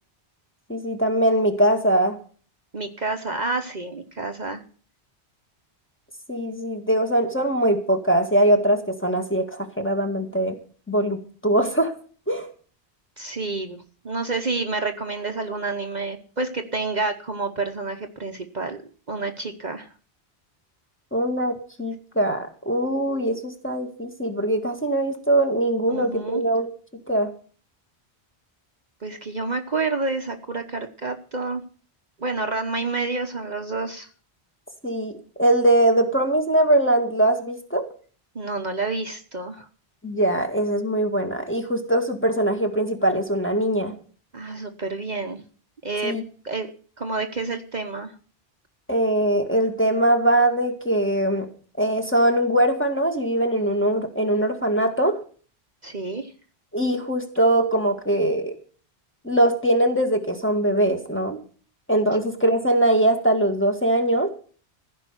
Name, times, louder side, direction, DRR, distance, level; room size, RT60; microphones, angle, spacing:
voice 1, 0.7-2.2 6.3-10.6 10.9-11.9 12.3-12.5 21.1-26.7 27.1-27.3 34.8-35.1 35.4-37.9 40.0-43.9 46.0-46.2 48.9-51.5 51.8-55.2 56.7-58.6 59.2-61.4 61.9-64.3, right 1 dB, 10° left, 2 dB, 1.8 m, -21 dB
voice 2, 2.7-4.6 13.2-18.8 19.1-19.9 25.9-26.4 29.0-31.6 32.2-34.1 38.3-39.7 44.3-45.4 45.8-46.2 46.4-46.7 47.0-48.1 55.8-56.3, right 3 dB, 45° right, 5 dB, 1.2 m, -29 dB
15.5 x 5.3 x 9.7 m, 0.41 s
omnidirectional pair, 1.1 m